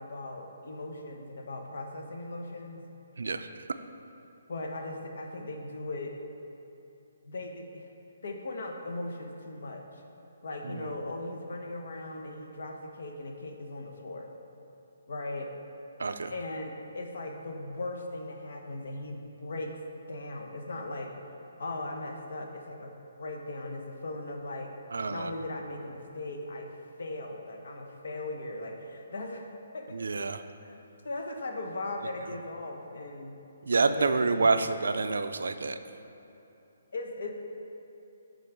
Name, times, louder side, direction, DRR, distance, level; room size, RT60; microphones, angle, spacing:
voice 1, 0.0-2.8 4.5-6.1 7.2-7.9 8.2-10.0 10.4-14.3 15.1-15.5 16.3-19.8 20.1-21.1 21.6-22.9 23.2-24.7 25.1-26.7 27.0-29.5 29.7-30.0 30.6-30.8 31.0-33.4 33.9-35.0 36.9-37.3, left 2 dB, 55° left, 2 dB, 0.9 m, -38 dB
voice 2, 16.0-16.3 24.9-25.3 29.9-30.4 33.7-35.8, right 3 dB, 85° right, 9 dB, 0.4 m, -27 dB
8.2 x 3.9 x 5.9 m, 3.0 s
hypercardioid pair, 175°, 0 cm